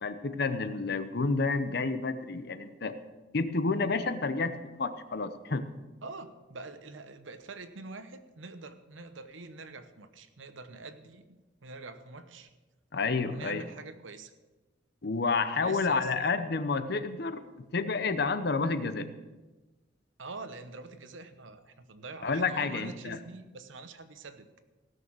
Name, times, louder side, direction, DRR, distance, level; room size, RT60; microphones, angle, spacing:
voice 1, 0.0-3.0 3.3-5.7 12.9-13.6 15.0-17.4 17.7-19.1 22.2-23.2, left 4 dB, 55° left, 11 dB, 0.8 m, -30 dB
voice 2, 6.0-12.5 13.3-14.3 15.6-16.1 20.2-24.5, right 3 dB, 80° right, 10 dB, 0.9 m, -45 dB
16.5 x 6.6 x 6.2 m, 1.2 s
head